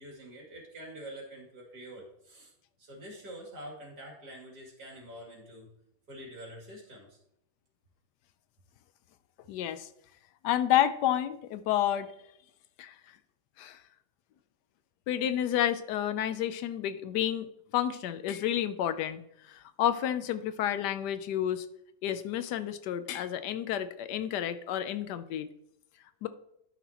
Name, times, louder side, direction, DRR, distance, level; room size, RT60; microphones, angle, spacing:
voice 1, 0.0-2.5 2.8-5.7 6.1-7.2, right 1 dB, 75° right, -2 dB, 3.1 m, -46 dB
voice 2, 9.5-9.9 10.4-12.1 12.8-12.9 13.6-13.8 15.1-19.2 19.5-21.7 22.0-25.5 26.2-26.3, left 11 dB, 85° left, 11 dB, 1.2 m, -30 dB
12.0 x 5.9 x 2.9 m, 0.76 s
omnidirectional pair, 1.7 m